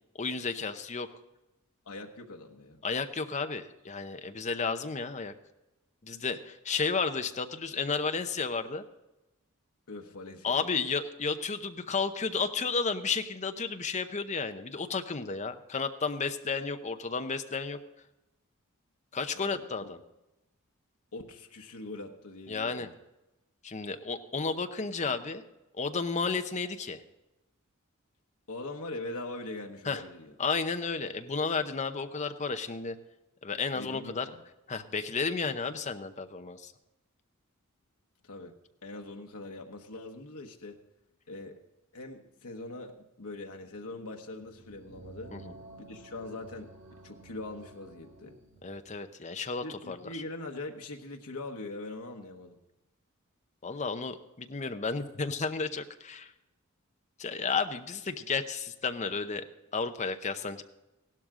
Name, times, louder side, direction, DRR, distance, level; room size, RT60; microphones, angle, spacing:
voice 1, 0.1-1.1 2.8-5.3 6.0-8.8 10.4-17.8 19.1-20.0 22.5-22.9 23.6-25.4 25.7-27.0 29.8-30.0 30.4-33.0 33.4-34.3 34.7-36.7 45.3-45.5 48.6-50.2 53.6-56.3 57.2-59.4 59.7-60.6, left 4 dB, 35° left, 8 dB, 0.8 m, -32 dB
voice 2, 1.8-2.8 9.9-10.9 19.3-19.9 21.1-22.9 28.5-30.3 33.7-34.4 38.2-38.6 38.8-40.8 41.3-41.6 41.9-45.3 45.8-46.7 47.0-48.4 49.6-52.6, left 2 dB, 85° left, 2 dB, 1.1 m, -42 dB
sound 1, 44.3-49.0, right 2 dB, 60° right, 2.0 m, -52 dB
16.0 x 12.0 x 3.8 m, 0.97 s
head